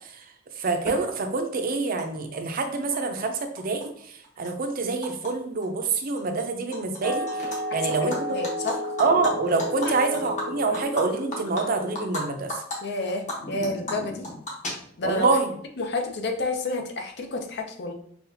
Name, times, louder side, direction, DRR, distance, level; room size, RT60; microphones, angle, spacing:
voice 1, 0.6-3.9 4.4-7.3 7.7-8.2 9.0-12.5 15.0-15.5, right 3 dB, 45° right, 6 dB, 0.5 m, -26 dB
Animal, 0.9-1.0 2.0-2.1 2.3-3.2 3.6-5.3 5.6-5.9 6.2-7.0 7.3-7.6 7.9-12.2 12.5-12.8 13.1-15.2, left 1 dB, 40° left, 1.1 m, -35 dB
sound 1, 7.0-12.5, left 1 dB, 20° left, 0.4 m, -33 dB
voice 2, 8.0-8.8 9.8-10.0 10.7-10.8 12.8-14.3 15.0-15.3 15.8-17.9, left 2 dB, 60° left, 4 dB, 0.6 m, -30 dB
5.5 x 2.3 x 2.7 m, 0.62 s
head